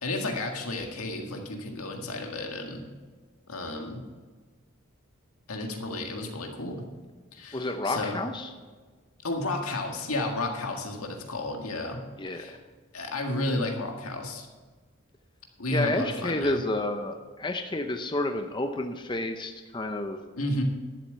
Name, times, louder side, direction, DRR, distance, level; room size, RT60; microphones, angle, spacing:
voice 1, 0.0-2.9 3.5-4.0 5.5-6.9 7.3-8.2 9.2-12.0 12.3-12.6 12.9-14.5 15.6-16.6 20.4-20.6, left 2 dB, 90° left, 2 dB, 1.9 m, -32 dB
voice 2, 7.5-8.5 12.2-12.6 15.7-20.2, left 2 dB, 20° left, 6 dB, 0.6 m, -30 dB
12.0 x 7.7 x 6.7 m, 1.4 s
head